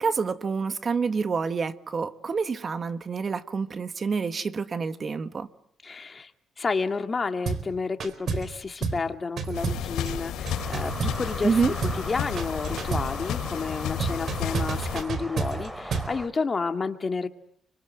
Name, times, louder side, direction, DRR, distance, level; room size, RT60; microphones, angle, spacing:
voice 1, 0.0-5.5 11.4-11.7, right 5 dB, 40° right, 1.6 m, -27 dB
voice 2, 5.8-6.3 6.6-11.6 12.0-17.3, left 4 dB, 30° left, 2.4 m, -30 dB
sound 1, 7.5-7.7 8.0-8.5 8.8-9.1 9.4-11.5 11.8-12.1 12.4-13.2 14.0-16.2, right 5 dB, 60° right, 4.0 m, -30 dB
sound 2, 9.5-15.0, left 10 dB, 85° left, 4.2 m, -32 dB
sound 3, 10.5-16.3, equal, 5° right, 2.8 m, -39 dB
29.5 x 25.0 x 7.8 m
cardioid pair, 90°, 0 cm